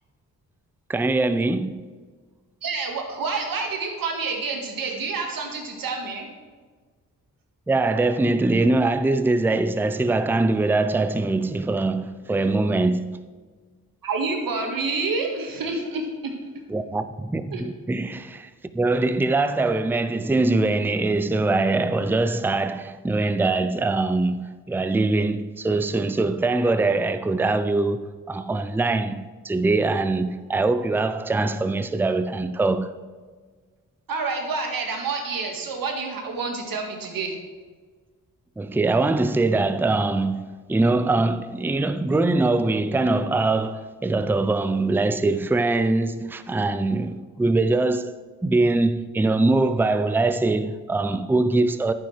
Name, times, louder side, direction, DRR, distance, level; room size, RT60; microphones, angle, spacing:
voice 1, 0.9-1.8 7.7-13.3 16.7-33.0 38.6-51.9, right 2 dB, 5° right, 0.5 m, -23 dB
voice 2, 2.6-6.3 14.0-16.3 17.5-17.6 34.1-37.4, right 4 dB, 75° right, 1.7 m, -28 dB
11.0 x 9.2 x 3.2 m
cardioid pair, 55°, 35 cm